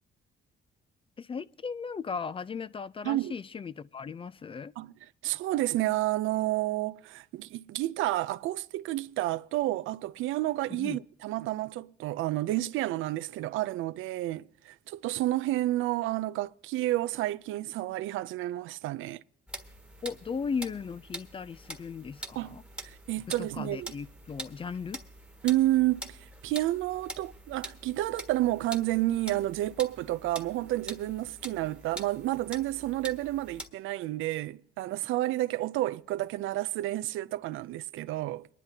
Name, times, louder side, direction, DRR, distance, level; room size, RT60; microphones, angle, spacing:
voice 1, 1.2-4.7 10.7-11.0 20.0-22.6 23.4-25.0, left 5 dB, 25° left, 0.4 m, -37 dB
voice 2, 5.2-19.2 22.4-22.6 22.8-23.9 25.4-26.2 26.4-38.5, right 16 dB, 90° right, 0.4 m, -30 dB
sound 1, 19.5-33.7, right 1 dB, 5° right, 1.4 m, -45 dB
23.0 x 11.0 x 2.8 m
cardioid pair, 90°, 20 cm